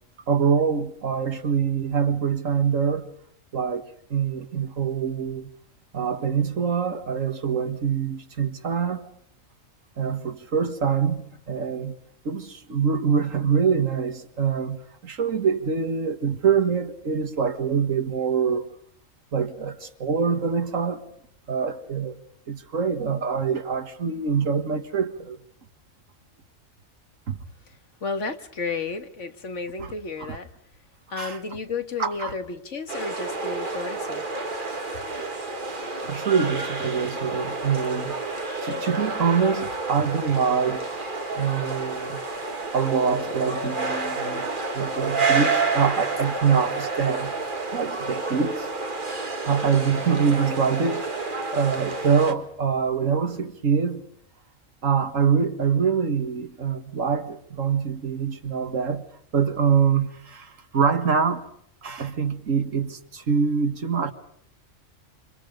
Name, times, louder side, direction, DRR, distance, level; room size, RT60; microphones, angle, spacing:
voice 1, 0.3-3.1 3.5-5.5 5.9-9.1 10.0-12.0 12.3-18.7 19.3-21.0 21.5-22.2 22.5-25.4 27.3-27.4 29.8-29.9 30.2-30.4 31.2-31.4 32.0-32.4 36.1-40.9 41.4-42.2 42.7-44.5 44.7-47.3 47.7-48.7 49.2-51.2 51.5-54.1 54.8-59.0 59.3-61.5 61.8-64.1, right 6 dB, 70° right, 2.0 m, -25 dB
voice 2, 28.0-30.5 31.1-34.3, left 4 dB, 65° left, 1.9 m, -32 dB
sound 1, 32.9-52.3, right 3 dB, 40° right, 2.0 m, -29 dB
28.5 x 26.5 x 5.2 m
omnidirectional pair, 1.4 m